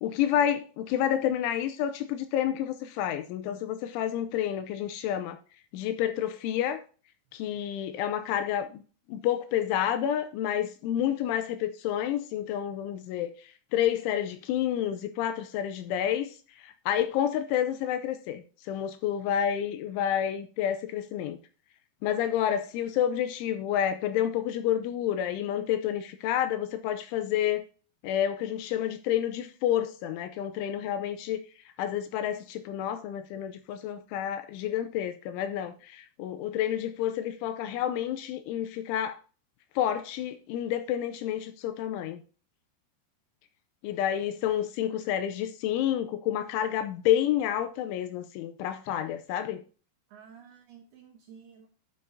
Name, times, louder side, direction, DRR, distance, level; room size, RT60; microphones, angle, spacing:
voice 1, 0.0-5.4 5.7-6.8 7.3-8.8 9.1-21.4 22.0-27.6 28.0-31.4 31.8-39.2 39.8-42.2 43.8-49.6, left 10 dB, 80° left, 2.9 m, -29 dB
voice 2, 50.1-51.7, right 7 dB, 70° right, 2.5 m, -52 dB
12.5 x 6.9 x 2.7 m
omnidirectional pair, 5.8 m